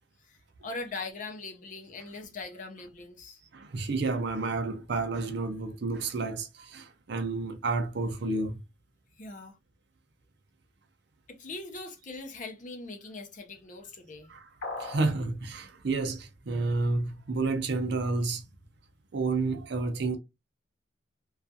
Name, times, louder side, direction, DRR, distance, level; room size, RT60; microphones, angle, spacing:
voice 1, 0.6-3.4 9.2-9.6 11.3-14.3, left 3 dB, 40° left, 0.5 m, -41 dB
voice 2, 3.5-8.6 14.3-14.5 14.8-18.4 19.1-20.2, right 3 dB, 60° right, 0.5 m, -30 dB
sound 1, 14.6-15.2, left 3 dB, 65° left, 0.9 m, -37 dB
2.3 x 2.3 x 2.6 m
head